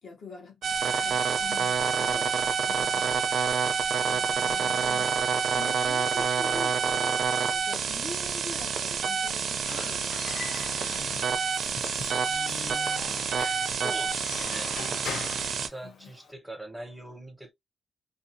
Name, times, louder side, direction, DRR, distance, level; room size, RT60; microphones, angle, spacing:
voice 1, 0.0-3.7 4.1-11.4 15.6-16.1, left 3 dB, 50° left, 1.0 m, -46 dB
sound 1, 0.6-15.7, right 6 dB, 55° right, 0.4 m, -28 dB
voice 2, 1.9-2.4 13.7-14.8 15.5-17.5, right 1 dB, 5° right, 0.6 m, -43 dB
Squeak / Wood, 9.4-16.3, left 7 dB, 70° left, 0.4 m, -41 dB
2.6 x 2.3 x 2.6 m
wide cardioid pair, 175°, 0 cm